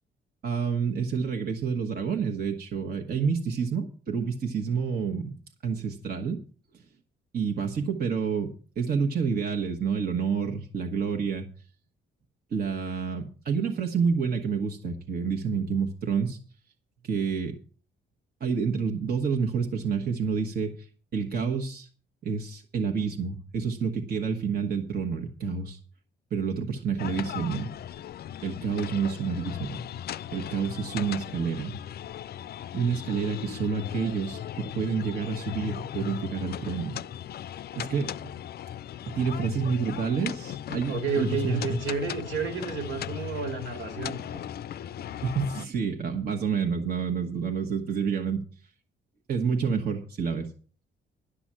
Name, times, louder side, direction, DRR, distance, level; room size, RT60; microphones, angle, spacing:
voice 1, 0.4-5.3 5.6-6.4 7.3-11.5 12.5-16.4 17.0-17.6 18.4-20.9 21.1-21.9 22.2-25.8 26.3-27.7 28.4-29.8 30.3-31.7 32.7-37.0 37.7-38.3 39.1-41.8 45.2-48.4 49.3-50.5, right 6 dB, 50° right, 3 dB, 1.3 m, -29 dB
sound 1, 27.0-45.7, left 10 dB, 50° left, 0.4 m, -37 dB
voice 2, 40.9-44.4, right 4 dB, 75° right, 6 dB, 2.5 m, -31 dB
11.5 x 6.1 x 7.4 m, 0.41 s
cardioid pair, 90°, 20 cm